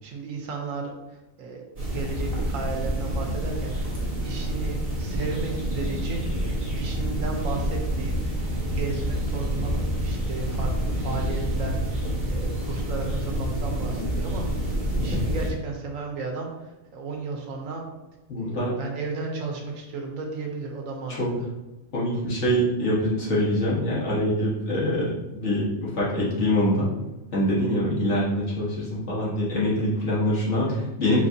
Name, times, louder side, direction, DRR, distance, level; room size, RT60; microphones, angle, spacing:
voice 1, 0.0-3.9 4.2-9.7 10.0-14.5 14.9-17.9 18.4-21.5, right 4 dB, 85° right, 1 dB, 1.2 m, -34 dB
sound 1, 1.8-15.5, equal, 30° right, 1.1 m, -28 dB
voice 2, 18.3-18.7 21.1-21.3 21.9-26.9 27.3-31.3, equal, 60° left, -7 dB, 1.8 m, -24 dB
5.5 x 3.1 x 2.7 m, 1.0 s
omnidirectional pair, 1.3 m